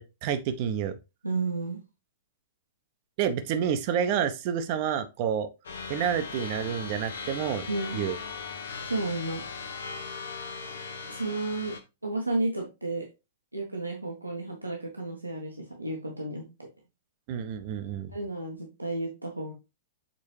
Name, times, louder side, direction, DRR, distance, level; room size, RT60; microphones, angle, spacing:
voice 1, 0.2-0.9 3.2-5.5 5.9-7.7 7.9-8.2 17.3-18.1, right 8 dB, 40° right, 0.9 m, -29 dB
voice 2, 1.2-1.8 7.7-8.0 8.8-9.4 11.0-11.8 12.0-13.0 13.5-16.5 18.1-19.5, right 2 dB, 90° right, 1.4 m, -32 dB
sound 1, 5.6-11.8, left 5 dB, 65° left, 1.1 m, -38 dB
7.5 x 4.1 x 3.3 m
figure-of-eight pair, 105°, 0 cm